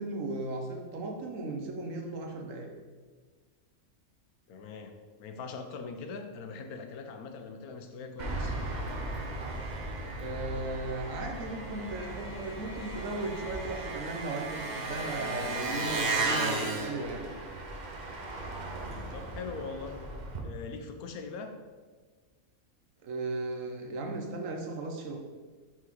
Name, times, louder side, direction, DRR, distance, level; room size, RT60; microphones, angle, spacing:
voice 1, 0.0-2.7 10.2-17.3 23.0-25.1, right 2 dB, 65° right, 2 dB, 1.2 m, -36 dB
voice 2, 4.5-8.6 18.9-20.1 20.4-21.5, left 4 dB, 85° left, 6 dB, 1.2 m, -42 dB
Engine, 8.2-20.4, right 2 dB, 40° right, 0.8 m, -35 dB
5.9 x 3.7 x 4.5 m, 1.5 s
omnidirectional pair, 1.5 m